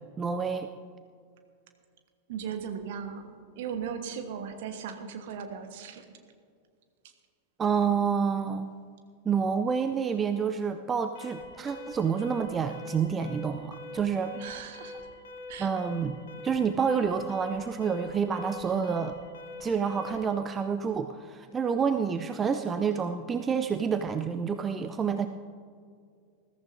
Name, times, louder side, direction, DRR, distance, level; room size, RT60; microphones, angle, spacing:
voice 1, 0.2-0.7 7.6-8.7 9.3-14.3 15.6-16.2 16.4-19.1 19.6-25.3, right 6 dB, 20° right, 8 dB, 0.5 m, -28 dB
voice 2, 2.3-3.2 3.5-6.0 14.3-15.0 15.5-15.7, right 7 dB, 55° right, 6 dB, 1.3 m, -37 dB
Alarm, 11.1-20.4, left 2 dB, 60° left, 1.9 m, -44 dB
20.5 x 14.0 x 2.7 m, 2.2 s
figure-of-eight pair, 90°, 0 cm